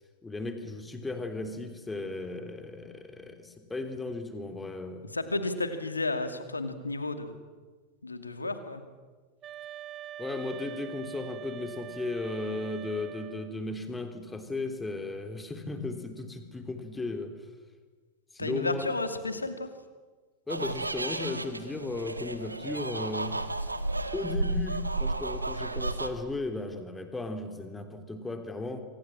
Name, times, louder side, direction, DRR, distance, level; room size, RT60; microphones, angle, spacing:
voice 1, 0.2-5.1 10.2-17.3 18.3-18.9 20.5-23.4 24.1-28.8, left 2 dB, 10° left, 7 dB, 3.3 m, -35 dB
voice 2, 5.1-7.4 8.0-8.8 18.4-19.7, left 2 dB, 80° left, 9 dB, 2.4 m, -32 dB
sound 1, 9.4-13.6, right 12 dB, 30° right, 0.9 m, -43 dB
sound 2, 20.5-26.1, right 2 dB, 85° right, 1.6 m, -33 dB
27.0 x 24.5 x 7.4 m, 1.4 s
figure-of-eight pair, 90°, 0 cm